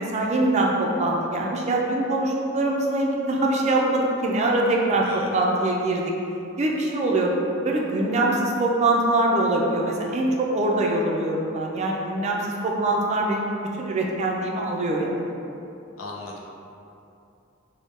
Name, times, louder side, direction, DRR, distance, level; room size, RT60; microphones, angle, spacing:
voice 1, 0.0-6.1 6.6-7.3 7.6-13.5 13.8-15.2, right 2 dB, 35° right, -1 dB, 0.4 m, -23 dB
voice 2, 16.0-16.4, left 2 dB, 80° left, -2 dB, 0.6 m, -35 dB
3.4 x 2.1 x 4.1 m, 2.7 s
head